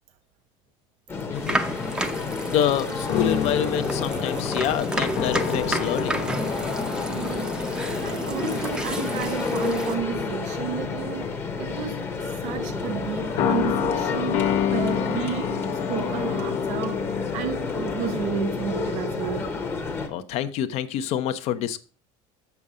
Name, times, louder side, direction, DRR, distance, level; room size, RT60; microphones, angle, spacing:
sound 1, 1.1-20.1, left 4 dB, 15° left, 0.9 m, -31 dB
voice 1, 1.3-1.6 2.5-6.3 20.1-21.8, left 10 dB, 50° left, 0.7 m, -27 dB
sound 2, 1.3-9.9, right 1 dB, 5° right, 0.6 m, -31 dB
sound 3, 3.1-9.2 9.5-9.8 10.8-11.5 13.4-18.6, left 9 dB, 70° left, 1.0 m, -29 dB
voice 2, 7.1-7.5 8.0-19.6, right 8 dB, 60° right, 1.0 m, -32 dB
7.1 x 6.6 x 4.9 m
cardioid pair, 175°, 14 cm